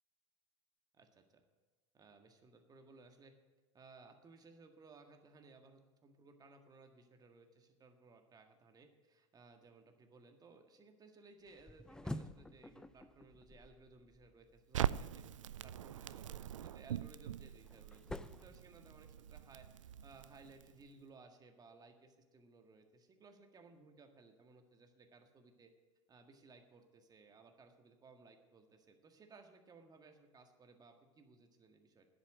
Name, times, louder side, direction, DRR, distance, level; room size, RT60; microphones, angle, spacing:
voice 1, 0.9-1.4 1.9-3.3 3.7-15.2 15.6-25.7 26.1-32.1, right 3 dB, 25° right, 5 dB, 1.8 m, -61 dB
sound 1, 11.5-14.6 16.8-19.4, left 1 dB, 5° left, 0.5 m, -49 dB
Crackle, 14.7-20.9, right 10 dB, 85° right, 0.4 m, -42 dB
10.0 x 8.2 x 9.1 m, 1.3 s
hypercardioid pair, 95°, 16 cm